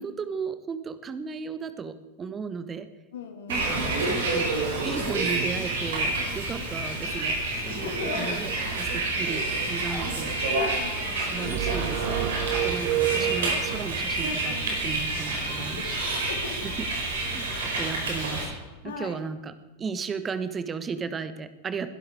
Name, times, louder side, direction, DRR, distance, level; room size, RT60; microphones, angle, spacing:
voice 1, 0.0-2.9 3.5-4.5 4.8-7.4 7.7-8.5 8.8-10.3 11.2-12.1 12.5-16.0 17.2-18.5 18.8-19.5 19.8-21.9, right 5 dB, 20° right, 12 dB, 1.3 m, -35 dB
voice 2, 3.1-3.8 7.7-8.9 10.8-11.4 15.6-16.7 18.8-19.2, left 5 dB, 60° left, 5 dB, 2.8 m, -39 dB
Bus, 3.5-18.4, right 2 dB, 60° right, 5.0 m, -28 dB
Zipper (clothing), 9.7-10.1 12.2-12.7 14.9-15.7 17.6-18.7, left 2 dB, 15° left, 5.8 m, -45 dB
sound 1, 11.5-13.9, right 15 dB, 40° right, 0.8 m, -29 dB
21.5 x 12.0 x 4.7 m, 1.1 s
figure-of-eight pair, 90°, 0 cm